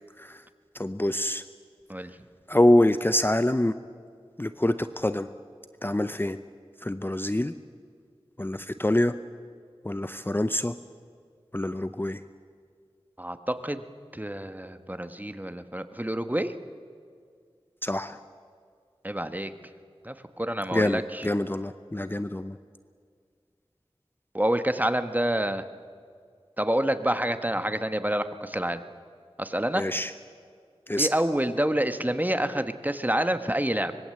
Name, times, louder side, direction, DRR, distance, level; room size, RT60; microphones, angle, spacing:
voice 1, 0.8-1.4 2.5-3.7 4.4-5.3 5.8-6.4 6.8-7.5 8.4-9.1 9.8-10.7 11.5-12.2 17.8-18.2 20.7-22.6 29.8-30.1 30.9-31.1, left 1 dB, 20° left, 11 dB, 0.7 m, -25 dB
voice 2, 13.2-13.8 14.1-16.5 19.0-19.5 20.0-21.3 24.3-25.7 26.6-28.8 29.4-29.8 31.0-33.9, right 1 dB, 15° right, 9 dB, 1.3 m, -28 dB
25.0 x 21.5 x 7.8 m, 2.1 s
wide cardioid pair, 50°, 10 cm